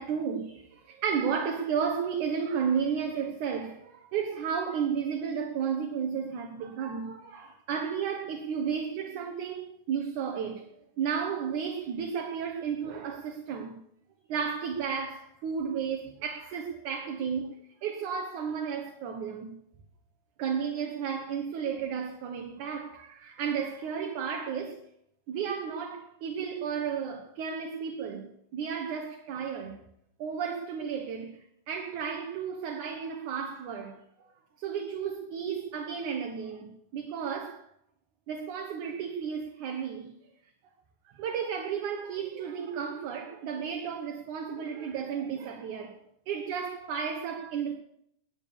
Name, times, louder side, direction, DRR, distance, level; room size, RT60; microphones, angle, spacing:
voice 1, 0.0-13.8 14.3-17.5 17.8-19.6 20.4-24.8 25.3-29.8 30.2-31.4 31.7-34.0 34.6-37.6 38.3-40.1 41.2-46.0 46.3-47.7, right 7 dB, 65° right, 2.8 m, -33 dB
21.0 x 9.5 x 7.0 m
omnidirectional pair, 3.9 m